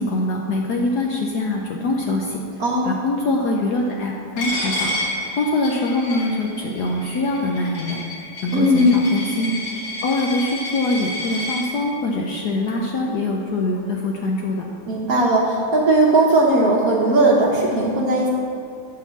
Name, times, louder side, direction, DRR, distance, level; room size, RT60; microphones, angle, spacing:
voice 1, 0.0-2.4 2.8-4.9 5.4-8.0 8.4-9.5 10.0-14.7, left 2 dB, 70° left, -1 dB, 1.0 m, -23 dB
voice 2, 2.6-3.0 8.5-9.0 14.9-18.3, right 1 dB, 55° right, -2 dB, 1.1 m, -17 dB
Coin (dropping), 4.4-11.6, left 1 dB, 90° left, 3.0 m, -30 dB
9.0 x 3.8 x 6.9 m, 2.6 s
omnidirectional pair, 2.3 m